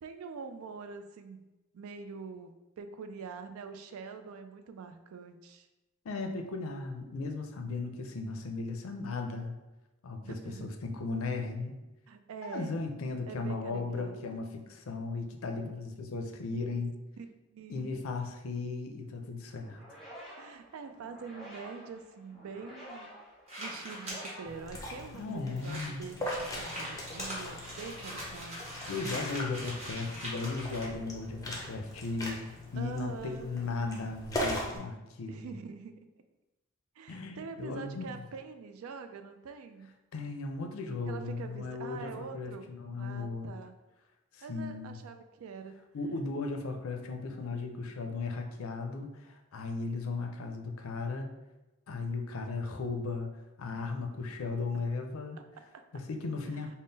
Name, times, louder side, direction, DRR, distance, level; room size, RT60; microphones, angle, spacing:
voice 1, 0.0-1.5 1.7-5.7 10.2-10.7 12.1-12.8 13.3-14.2 17.2-17.3 17.5-18.1 20.3-23.1 23.6-28.6 32.8-33.5 35.3-35.9 37.0-39.9 41.1-43.8 44.4-45.8 55.5-55.8 56.5-56.8, right 5 dB, 90° right, 8 dB, 0.4 m, -45 dB
voice 2, 6.0-9.5 10.0-11.8 12.4-17.0 17.7-19.8 25.1-26.0 28.9-35.5 37.1-38.1 40.1-43.5 44.3-45.0 45.9-51.3 51.9-53.3 53.6-55.4 55.9-56.8, left 3 dB, 80° left, 4 dB, 0.5 m, -36 dB
sound 1, 19.6-25.4, equal, ahead, 0.9 m, -50 dB
sound 2, 23.5-24.3 25.0-25.1 25.3-25.4 25.6-30.9, equal, 30° right, 1.0 m, -42 dB
Liquid, 24.5-34.8, left 1 dB, 15° left, 0.5 m, -40 dB
3.6 x 2.1 x 3.9 m, 1.0 s
head